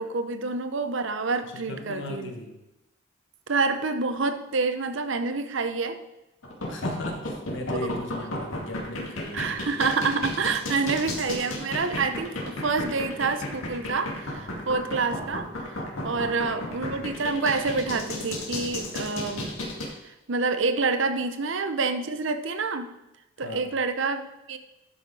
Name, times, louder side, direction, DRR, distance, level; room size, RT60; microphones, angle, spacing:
voice 1, 0.0-2.3 3.5-6.0 7.8-8.0 9.3-15.7 16.0-19.5 20.3-22.9 23.4-24.6, right 4 dB, 60° right, 9 dB, 0.8 m, -27 dB
voice 2, 1.5-2.6 6.6-9.6 15.9-16.7 23.4-23.7, left 2 dB, 60° left, 3 dB, 1.5 m, -37 dB
sound 1, 6.4-19.9, left 1 dB, 75° left, 2.4 m, -33 dB
12.0 x 5.8 x 4.7 m, 0.93 s
head